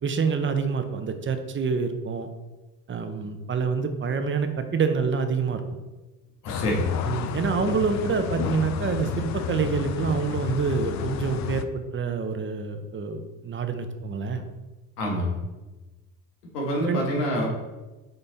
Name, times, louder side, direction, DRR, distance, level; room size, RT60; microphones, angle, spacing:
voice 1, 0.0-2.3 2.9-5.6 7.1-14.4 16.7-17.0, right 5 dB, 25° right, 7 dB, 0.7 m, -27 dB
voice 2, 6.4-7.0 15.0-15.4 16.5-17.5, left 1 dB, 90° left, -1 dB, 1.6 m, -26 dB
sound 1, 6.5-11.6, left 9 dB, 40° left, 0.4 m, -31 dB
5.9 x 3.9 x 4.0 m, 1.1 s
supercardioid pair, 80°, 46 cm